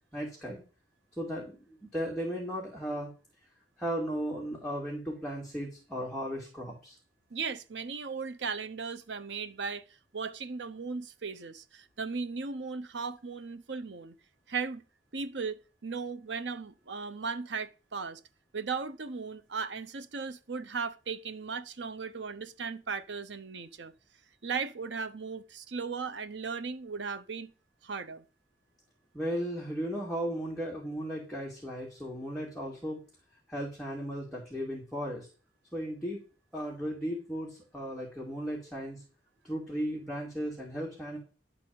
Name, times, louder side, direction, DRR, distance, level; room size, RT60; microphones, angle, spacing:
voice 1, 0.1-0.6 1.2-3.1 3.8-7.0 29.1-33.0 33.5-35.3 35.7-36.2 36.5-39.0 39.4-41.2, equal, 5° left, 2.3 m, -36 dB
voice 2, 7.3-9.8 10.1-14.1 14.5-14.8 15.1-18.2 18.5-23.9 24.4-27.5 27.8-28.2, right 5 dB, 80° right, 0.9 m, -37 dB
11.0 x 4.1 x 7.6 m
head